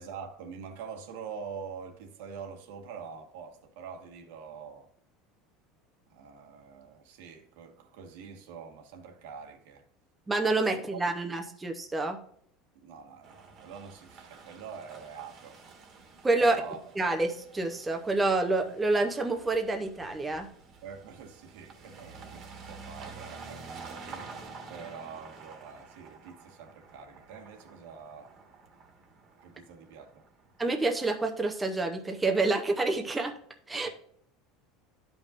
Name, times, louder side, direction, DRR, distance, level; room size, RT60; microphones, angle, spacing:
voice 1, 0.0-4.9 6.1-9.8 10.7-11.0 12.7-15.6 16.4-16.8 20.8-28.3 29.4-30.1 33.8-33.9, right 6 dB, 80° right, 1.4 m, -45 dB
voice 2, 10.3-12.2 16.2-16.6 17.0-20.5 30.6-33.3 33.7-33.9, right 2 dB, 10° right, 0.7 m, -28 dB
sound 1, 13.2-30.9, right 4 dB, 35° right, 1.4 m, -49 dB
12.5 x 5.4 x 2.5 m
cardioid pair, 165°, 0 cm